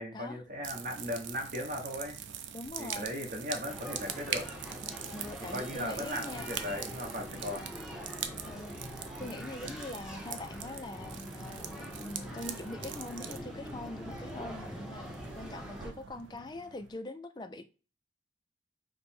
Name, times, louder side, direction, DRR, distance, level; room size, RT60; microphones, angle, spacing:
voice 1, 0.0-2.2 2.8-4.5 5.5-7.7, left 1 dB, 45° right, 2 dB, 1.1 m, -37 dB
sound 1, 0.6-16.9, right 8 dB, 75° right, 0.5 m, -43 dB
voice 2, 2.5-3.1 5.1-6.5 8.4-17.6, left 2 dB, 20° left, 9 dB, 0.3 m, -43 dB
sound 2, 3.6-15.9, equal, 5° right, 0.7 m, -44 dB
5.0 x 2.1 x 4.3 m, 0.35 s
head